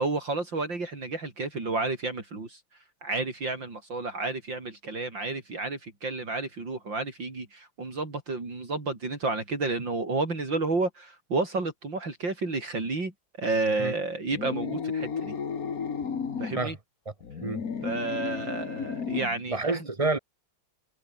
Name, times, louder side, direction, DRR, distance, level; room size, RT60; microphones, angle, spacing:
voice 1, 0.0-2.6 3.0-13.1 13.4-15.4 16.4-16.8 17.8-19.9, right 3 dB, 60° right, 5.4 m, -31 dB
sound 1, 14.3-16.6 17.2-19.4, left 6 dB, 45° left, 2.1 m, -33 dB
voice 2, 19.5-20.2, right 3 dB, 20° right, 1.1 m, -28 dB
omnidirectional pair, 2.3 m